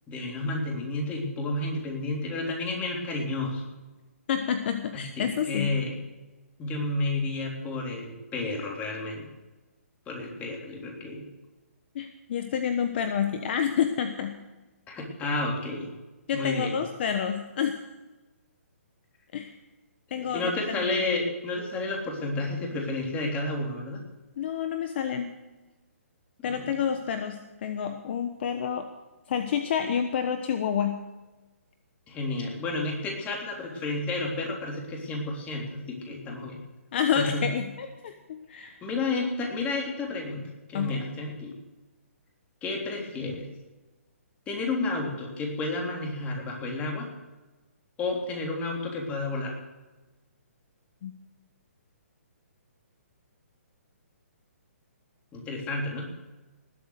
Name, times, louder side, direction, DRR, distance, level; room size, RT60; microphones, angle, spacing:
voice 1, 0.1-3.7 4.9-5.9 6.6-9.3 10.1-11.3 14.9-15.9 16.3-16.8 20.2-24.0 26.5-26.8 32.1-36.6 37.2-37.5 38.8-41.6 42.6-43.5 44.5-47.1 48.0-49.6 55.3-56.1, left 2 dB, 20° left, 0 dB, 3.5 m, -31 dB
voice 2, 4.3-5.7 11.9-14.4 16.3-17.8 19.3-19.5 20.1-20.9 24.4-25.3 26.4-28.9 29.3-31.0 36.9-38.8 40.7-41.0 51.0-51.1, left 8 dB, 50° left, 8 dB, 1.1 m, -29 dB
19.5 x 8.3 x 6.6 m, 1.1 s
hypercardioid pair, 140°, 8 cm